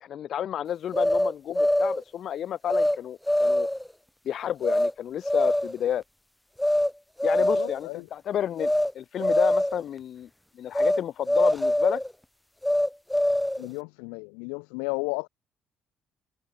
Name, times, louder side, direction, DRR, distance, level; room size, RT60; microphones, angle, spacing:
voice 1, 0.0-3.7 4.3-6.0 7.2-10.3 10.6-12.0, left 10 dB, 60° left, 0.4 m, -31 dB
sound 1, 0.9-2.0 2.7-3.0 3.3-3.9 4.6-4.9 5.2-5.8 6.6-6.9 7.2-7.8 8.6-8.9 9.2-9.8 10.7-11.0 11.3-12.1 12.6-13.7, left 1 dB, 5° left, 0.5 m, -23 dB
voice 2, 7.4-8.1 13.6-15.3, left 40 dB or more, 85° left, 1.1 m, -34 dB
supercardioid pair, 65°, 0 cm